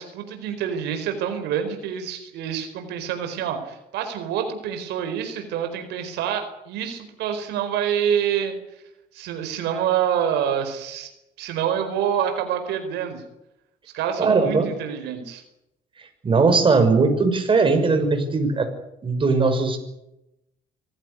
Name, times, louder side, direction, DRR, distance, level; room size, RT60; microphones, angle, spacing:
voice 1, 0.0-8.8 9.1-11.1 11.4-13.2 13.9-15.4, right 9 dB, 85° right, 7 dB, 4.6 m, -27 dB
voice 2, 14.2-14.7 16.2-18.7 19.0-19.8, right 4 dB, 30° right, 6 dB, 6.0 m, -19 dB
25.5 x 16.0 x 9.8 m, 0.87 s
cardioid pair, 110°, 17 cm